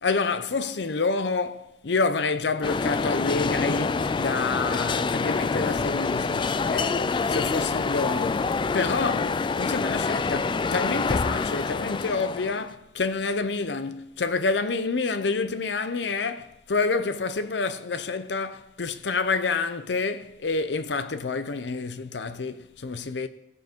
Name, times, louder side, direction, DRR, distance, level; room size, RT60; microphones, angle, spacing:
voice 1, 0.0-23.3, left 4 dB, 85° left, 0.7 m, -28 dB
sound 1, 2.6-12.7, left 4 dB, 30° left, 0.3 m, -26 dB
15.5 x 7.3 x 4.5 m
head